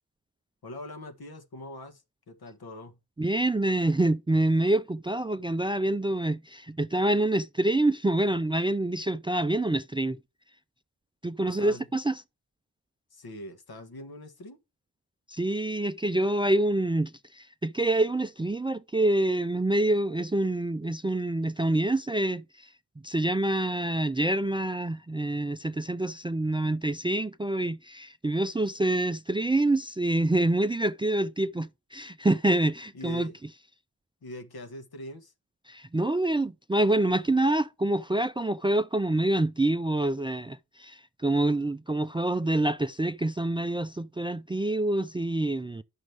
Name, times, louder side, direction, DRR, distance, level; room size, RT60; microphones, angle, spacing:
voice 1, 0.6-3.0 11.5-11.9 13.1-14.6 32.9-33.4 34.2-35.3, left 1 dB, 75° left, 1.4 m, -42 dB
voice 2, 3.2-10.2 11.2-12.2 15.3-22.7 23.0-33.3 35.7-45.8, right 1 dB, 15° right, 0.3 m, -26 dB
9.1 x 6.3 x 3.3 m
cardioid pair, 55°, 38 cm